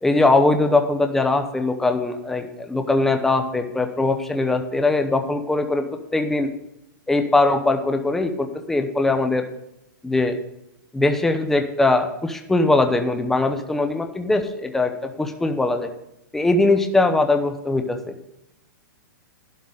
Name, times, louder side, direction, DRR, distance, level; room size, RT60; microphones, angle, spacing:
voice 1, 0.0-5.8 6.1-6.5 7.1-9.5 10.0-10.4 10.9-15.9 16.3-18.1, left 2 dB, 5° left, 6 dB, 0.7 m, -21 dB
11.5 x 11.0 x 3.9 m, 0.84 s
hypercardioid pair, 160°, 11 cm